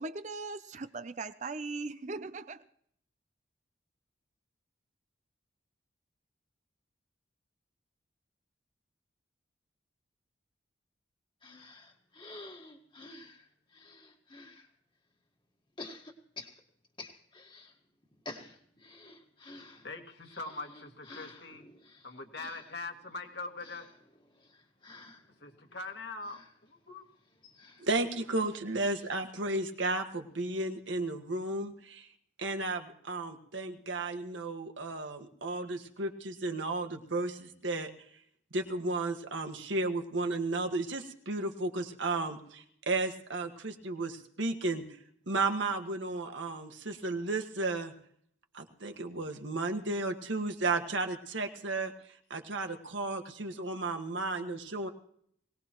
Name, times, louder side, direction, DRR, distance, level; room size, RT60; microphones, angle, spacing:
voice 1, 0.0-2.7, right 3 dB, 40° right, 0.6 m, -39 dB
sound 1, 11.4-14.7 15.8-17.8 18.0-30.0 30.3-30.4 30.6-30.8, left 2 dB, 25° left, 1.7 m, -51 dB
voice 2, 19.8-21.6 22.0-23.9 25.4-27.0, left 3 dB, 60° left, 2.1 m, -42 dB
voice 3, 27.8-32.1 32.4-37.9 38.5-45.0 45.3-47.9 48.5-54.9, right 2 dB, 80° right, 1.7 m, -33 dB
22.0 x 19.0 x 3.0 m
head